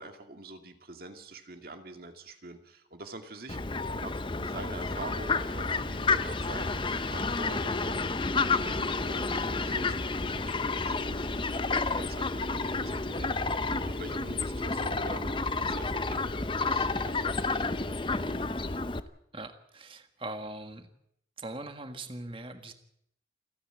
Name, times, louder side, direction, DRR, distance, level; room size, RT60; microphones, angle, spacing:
voice 1, 0.0-8.1 8.4-13.3 13.8-18.0, right 2 dB, 50° right, 6 dB, 2.3 m, -45 dB
Fowl, 3.5-19.0, left 3 dB, 25° left, 0.8 m, -30 dB
sound 1, 4.8-11.9, left 1 dB, 85° left, 2.8 m, -50 dB
voice 2, 19.3-20.9 21.4-22.7, right 2 dB, 30° right, 7 dB, 1.7 m, -41 dB
28.5 x 10.0 x 9.1 m, 0.74 s
head